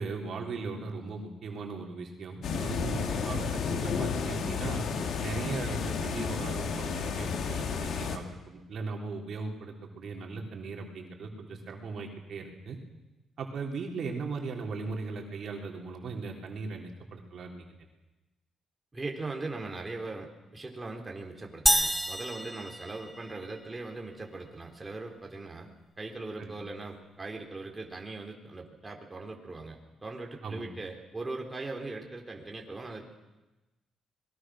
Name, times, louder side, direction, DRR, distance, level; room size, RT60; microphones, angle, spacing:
voice 1, 0.0-4.9 5.2-12.8 13.4-17.7 26.4-26.6 30.4-30.7, right 4 dB, 60° right, 1 dB, 3.9 m, -38 dB
sound 1, 2.4-8.2, left 6 dB, 65° left, 2.5 m, -32 dB
voice 2, 18.9-25.7 26.0-33.1, right 3 dB, 20° right, 1 dB, 3.9 m, -40 dB
sound 2, 21.7-23.6, right 1 dB, 5° right, 1.3 m, -28 dB
26.0 x 21.0 x 6.4 m, 1.1 s
cardioid pair, 90°, 0 cm